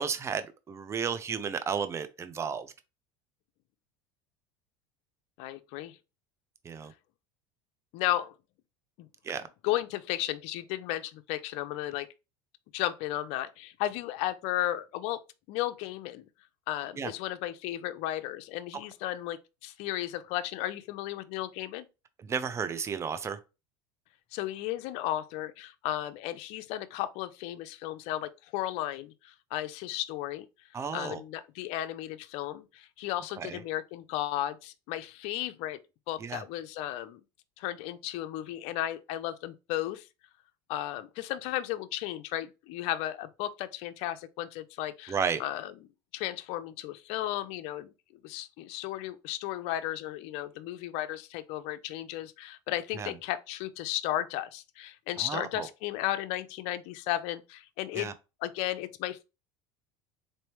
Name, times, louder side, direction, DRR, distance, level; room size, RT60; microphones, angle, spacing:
voice 1, 0.0-2.7 6.6-6.9 9.2-9.4 17.0-17.1 22.2-23.4 30.7-31.2 33.4-33.6 36.2-36.4 45.1-45.4 52.9-53.1 55.2-55.7 58.0-58.1, right 6 dB, 25° right, 0.6 m, -33 dB
voice 2, 5.4-6.0 7.9-8.3 9.0-9.1 9.6-12.1 12.7-15.2 15.5-16.3 16.7-21.9 24.3-30.5 30.9-35.8 36.1-37.2 37.6-40.1 40.7-45.7 46.1-47.9 48.2-58.1 58.4-59.2, left 14 dB, 65° left, 0.5 m, -34 dB
3.9 x 3.3 x 3.0 m
supercardioid pair, 110°, 11 cm